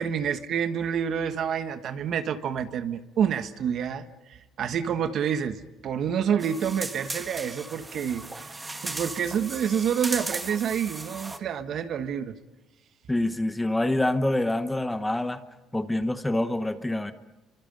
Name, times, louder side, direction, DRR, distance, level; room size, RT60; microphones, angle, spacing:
voice 1, 0.0-12.3, right 8 dB, 55° right, 10 dB, 1.3 m, -28 dB
sound 1, 6.4-11.4, right 2 dB, 15° right, 1.5 m, -36 dB
voice 2, 13.1-15.4 15.7-17.1, left 1 dB, 10° left, 10 dB, 1.1 m, -26 dB
29.5 x 24.5 x 5.3 m, 1.1 s
cardioid pair, 125°, 0 cm